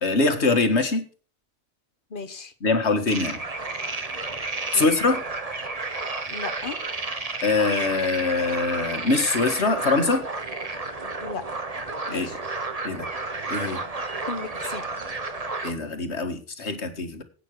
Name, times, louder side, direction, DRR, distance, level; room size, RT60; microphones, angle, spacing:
voice 1, 0.0-1.0 2.6-3.4 4.7-5.2 7.4-10.2 12.1-12.3 12.8-13.1 13.5-13.8 15.6-17.2, left 3 dB, 70° left, 7 dB, 2.0 m, -23 dB
voice 2, 2.1-2.5 4.7-4.9 6.3-6.8 11.2-11.4 12.1-12.4 14.3-14.8, left 4 dB, 45° left, 8 dB, 1.5 m, -35 dB
sound 1, 3.1-15.7, right 3 dB, 35° right, 1.4 m, -32 dB
11.5 x 9.0 x 6.2 m, 0.40 s
omnidirectional pair, 1.2 m